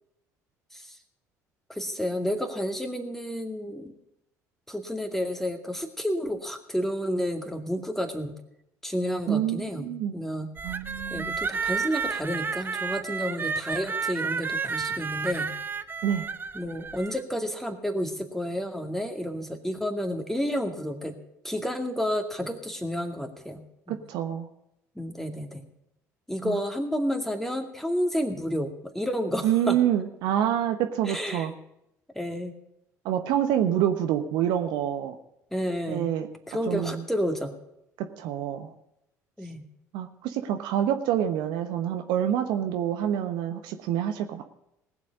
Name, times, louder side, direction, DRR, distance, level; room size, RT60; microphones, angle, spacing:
voice 1, 1.7-3.9 4.7-8.4 8.8-10.5 11.1-15.5 16.5-21.1 21.4-24.0 25.0-25.6 26.3-29.8 31.1-31.5 32.1-32.5 35.5-36.1 36.5-37.5 39.4-39.6, equal, 5° left, 6 dB, 2.3 m, -30 dB
voice 2, 9.3-10.1 10.6-11.4 16.0-16.3 23.9-24.5 26.4-26.6 29.4-31.5 33.0-35.1 35.9-36.3 36.7-37.0 38.2-38.7 39.9-44.4, right 10 dB, 60° right, 7 dB, 1.1 m, -27 dB
sound 1, 10.6-17.2, right 5 dB, 25° right, 0.8 m, -31 dB
19.5 x 7.5 x 5.3 m, 0.82 s
figure-of-eight pair, 55°, 9 cm